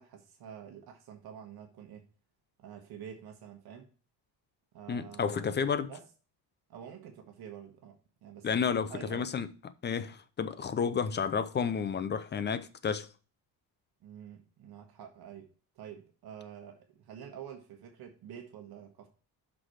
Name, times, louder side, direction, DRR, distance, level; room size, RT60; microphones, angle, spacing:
voice 1, 0.0-2.1 2.6-3.9 4.7-5.6 5.9-6.0 6.7-9.3 11.1-11.2 14.0-15.5 15.7-19.1, right 8 dB, 65° right, 1.4 m, -48 dB
voice 2, 4.9-5.9 8.4-9.5 9.8-13.1, left 6 dB, 25° left, 0.5 m, -31 dB
6.1 x 4.8 x 6.4 m
cardioid pair, 135°, 42 cm